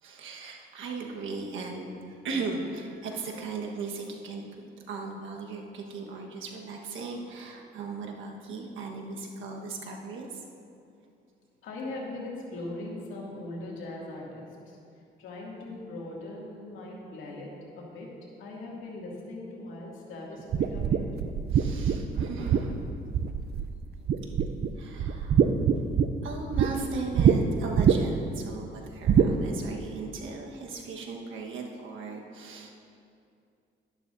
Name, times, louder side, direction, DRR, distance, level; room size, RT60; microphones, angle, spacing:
voice 1, 0.0-10.4 21.5-23.0 24.8-25.5 26.2-32.8, right 4 dB, 75° right, 0 dB, 1.4 m, -37 dB
voice 2, 11.6-14.8 15.2-17.5 17.8-18.1 18.4-21.0, left 2 dB, 80° left, -4 dB, 2.4 m, -40 dB
sound 1, 20.5-23.8 24.1-24.7 25.0-26.7 27.2-27.4 27.8-28.3 29.1-29.3, right 8 dB, 55° right, 0.5 m, -23 dB
12.0 x 11.0 x 2.7 m, 2.5 s
cardioid pair, 90°, 20 cm